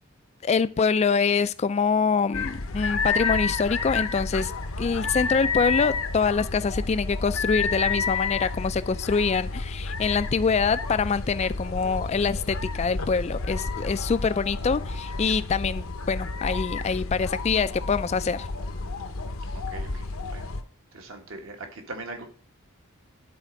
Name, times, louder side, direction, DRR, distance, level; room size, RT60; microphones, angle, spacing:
voice 1, 0.4-4.5 4.8-18.5, left 5 dB, 30° left, 15 dB, 0.3 m, -25 dB
sound 1, 2.3-20.6, left 4 dB, 70° left, 0.8 m, -30 dB
voice 2, 19.5-20.5 20.9-22.3, right 2 dB, 60° right, 4 dB, 1.5 m, -40 dB
10.5 x 4.3 x 5.1 m, 0.43 s
head